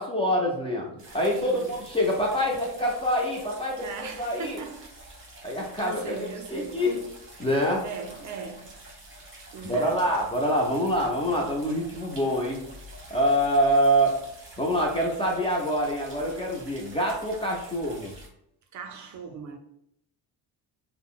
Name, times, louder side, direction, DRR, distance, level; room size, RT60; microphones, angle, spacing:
voice 1, 0.0-3.9 4.2-4.6 5.4-7.0 7.4-7.8 9.6-12.6 13.1-14.2 14.6-18.1, equal, 15° left, 0.3 m, -25 dB
sound 1, 1.0-18.3, right 1 dB, 30° right, 0.9 m, -47 dB
voice 2, 1.2-1.8 3.8-4.9 5.8-6.9 7.8-8.8 9.5-10.1 18.7-19.6, right 5 dB, 45° right, 0.5 m, -39 dB
3.6 x 2.1 x 2.3 m
cardioid pair, 125°, 42 cm